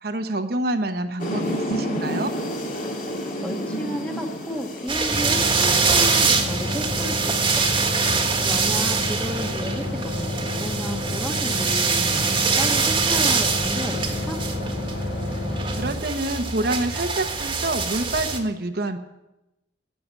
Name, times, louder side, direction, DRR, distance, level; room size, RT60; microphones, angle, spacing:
voice 1, 0.0-2.3 15.8-19.0, right 2 dB, 55° right, 7 dB, 1.0 m, -27 dB
sound 1, 1.2-8.2, equal, 45° left, 2.7 m, -31 dB
voice 2, 3.4-7.9 8.4-14.4, equal, 5° left, 3 dB, 1.3 m, -33 dB
sound 2, 4.9-18.4, right 5 dB, 25° right, 1.6 m, -24 dB
sound 3, 5.1-15.9, left 1 dB, 80° left, 2.6 m, -29 dB
16.5 x 6.8 x 9.3 m, 0.95 s
head